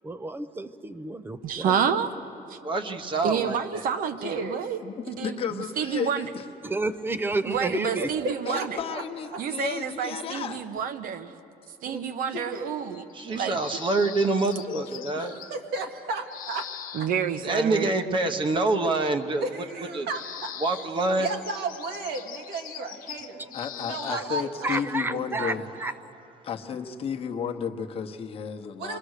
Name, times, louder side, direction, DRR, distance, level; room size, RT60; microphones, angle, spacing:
voice 1, 0.0-1.8 6.6-8.1 24.1-24.2 24.6-25.9, right 2 dB, 15° right, 0.5 m, -31 dB
voice 2, 1.4-2.1 2.5-2.6 3.2-4.8 5.1-6.3 7.5-8.7 9.4-11.3 11.8-13.6 16.9-17.9, right 7 dB, 55° right, 1.1 m, -29 dB
voice 3, 2.6-3.8 13.1-15.3 17.4-19.5 19.9-20.1 20.6-21.3, right 2 dB, 30° right, 0.9 m, -26 dB
voice 4, 4.2-4.6 7.7-9.0 9.3-9.4 11.9-12.0 12.3-12.7 15.2-16.7 17.0-17.1 19.4-20.5 21.2-23.4 23.8-24.8 25.1-25.6 28.8-29.0, right 3 dB, 75° right, 2.1 m, -33 dB
voice 5, 4.8-6.5 8.5-10.6 14.7-15.2 23.5-25.6 26.5-29.0, left 7 dB, 35° left, 1.0 m, -33 dB
sound 1, 12.8-15.5 16.3-17.3 18.9-19.3 19.7-19.8 20.1-24.2, left 10 dB, 55° left, 0.8 m, -42 dB
27.5 x 21.5 x 6.5 m
cardioid pair, 175°, 17 cm